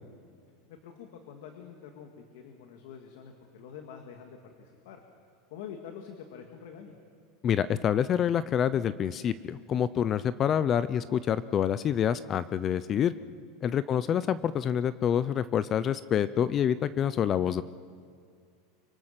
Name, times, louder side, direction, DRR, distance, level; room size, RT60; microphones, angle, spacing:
voice 1, 0.7-5.0 5.5-6.9 13.8-14.0, left 7 dB, 70° left, 4 dB, 2.1 m, -46 dB
voice 2, 7.4-13.1 13.6-17.6, left 9 dB, 30° left, 16 dB, 0.5 m, -27 dB
24.5 x 24.5 x 5.9 m, 2.1 s
supercardioid pair, 150°, 0 cm